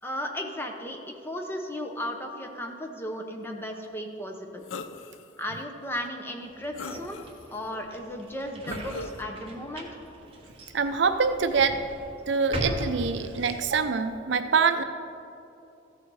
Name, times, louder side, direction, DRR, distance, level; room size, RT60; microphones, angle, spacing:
voice 1, 0.0-4.6 5.4-7.2 7.5-9.9, left 1 dB, 10° left, 3 dB, 0.8 m, -35 dB
sound 1, 4.7-5.3 5.8-5.9 6.8-7.6 8.7-9.2, left 4 dB, 75° left, 0.5 m, -39 dB
sound 2, 6.4-13.9, right 1 dB, 30° right, 1.2 m, -39 dB
voice 2, 10.7-11.8 12.3-14.8, right 5 dB, 65° right, 9 dB, 0.5 m, -25 dB
14.0 x 6.7 x 4.7 m, 2.7 s
head